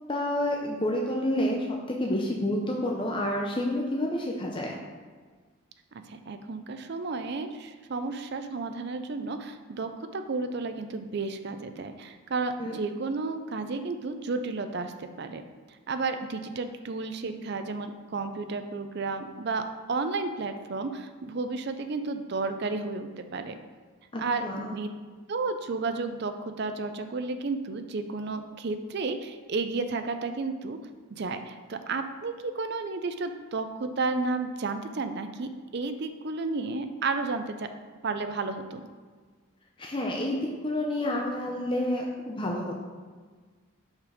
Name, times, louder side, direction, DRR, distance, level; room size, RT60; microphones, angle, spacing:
voice 1, 0.1-4.7 12.6-12.8 24.1-24.7 39.8-42.8, left 1 dB, 25° left, -1 dB, 0.6 m, -29 dB
voice 2, 6.1-15.4 15.9-23.6 24.2-24.9 25.3-30.8 31.1-37.7 38.0-38.8, right 3 dB, 50° right, 8 dB, 0.5 m, -32 dB
6.4 x 5.0 x 4.9 m, 1.5 s
head